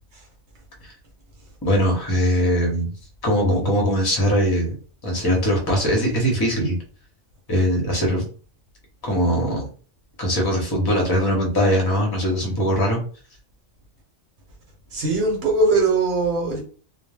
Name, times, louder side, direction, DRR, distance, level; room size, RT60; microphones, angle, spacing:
voice 1, 1.6-2.9 3.2-4.8 5.0-6.8 7.5-8.2 9.0-9.7 10.2-13.0, equal, 25° left, 0.6 m, -21 dB
voice 2, 14.9-16.6, right 3 dB, 60° right, 1.0 m, -20 dB
2.2 x 2.1 x 3.3 m
omnidirectional pair, 1.3 m